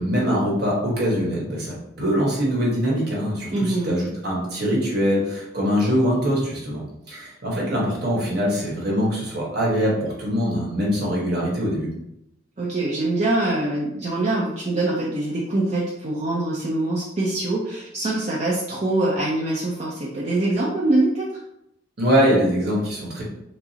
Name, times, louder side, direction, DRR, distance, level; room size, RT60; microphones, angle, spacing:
voice 1, 0.0-6.8 7.1-11.9 22.0-23.2, equal, 55° right, -4 dB, 1.2 m, -23 dB
voice 2, 3.5-3.9 12.6-21.3, right 2 dB, 35° right, -6 dB, 0.5 m, -24 dB
4.6 x 2.0 x 2.8 m, 0.83 s
head